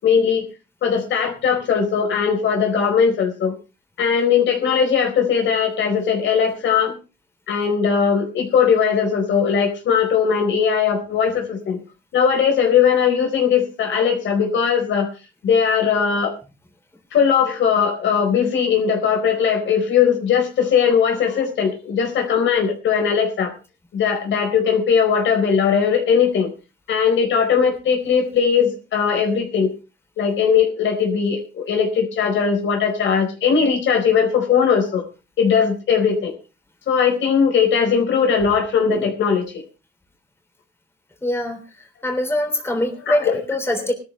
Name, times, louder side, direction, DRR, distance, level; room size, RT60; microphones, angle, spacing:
voice 1, 0.0-0.5 0.8-3.5 4.0-7.0 7.5-11.8 12.1-15.1 15.4-16.4 17.1-23.5 23.9-26.5 26.9-29.7 30.2-35.0 35.4-36.3 36.9-39.6 43.1-43.4 43.9-44.0, left 7 dB, 70° left, 4 dB, 4.5 m, -19 dB
voice 2, 41.2-43.9, left 1 dB, 10° left, 4 dB, 3.4 m, -23 dB
18.5 x 13.0 x 3.3 m, 0.31 s
cardioid pair, 90°, 20 cm